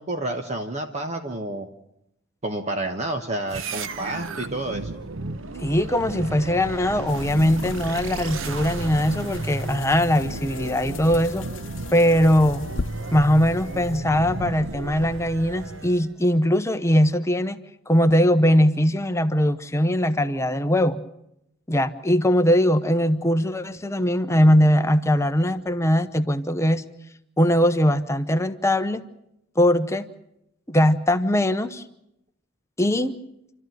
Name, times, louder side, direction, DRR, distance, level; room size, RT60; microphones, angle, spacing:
voice 1, 0.0-1.7 2.4-4.9, right 2 dB, 35° right, 5 dB, 1.2 m, -29 dB
sound 1, 3.5-16.1, right 3 dB, 75° right, 0.9 m, -33 dB
voice 2, 5.6-11.4 11.9-12.7 13.1-17.6 17.9-21.0 21.7-26.8 27.4-29.0 29.6-30.1 30.7-31.8 32.8-33.1, equal, 15° left, 9 dB, 0.9 m, -20 dB
sound 2, 7.1-14.0, left 3 dB, 65° left, 0.9 m, -38 dB
28.0 x 13.0 x 9.3 m, 0.81 s
head